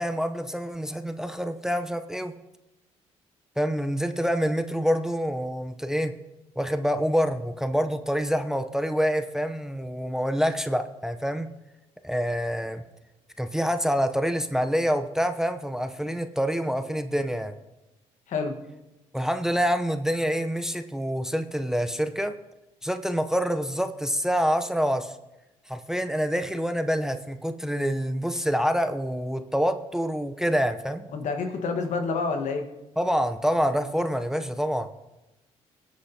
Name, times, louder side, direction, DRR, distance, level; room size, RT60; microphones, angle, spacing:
voice 1, 0.0-2.3 3.6-6.1 6.6-11.5 12.0-12.8 13.4-17.5 19.1-22.4 22.8-25.2 25.7-31.1 33.0-34.9, equal, 5° right, 9 dB, 0.7 m, -26 dB
voice 2, 31.1-32.6, left 4 dB, 65° left, 6 dB, 1.4 m, -28 dB
17.0 x 8.3 x 2.8 m, 0.98 s
supercardioid pair, 65°, 13 cm